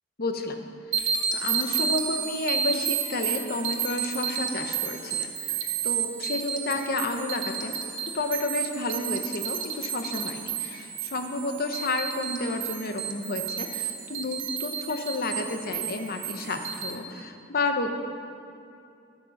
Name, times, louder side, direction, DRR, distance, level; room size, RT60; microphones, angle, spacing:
voice 1, 0.2-0.6 0.9-1.0 1.3-5.6 5.8-7.8 8.1-17.9, left 2 dB, 50° left, 5 dB, 0.9 m, -31 dB
sound 1, 0.9-16.9, right 7 dB, 75° right, 1.3 m, -31 dB
11.5 x 8.8 x 5.8 m, 2.5 s
head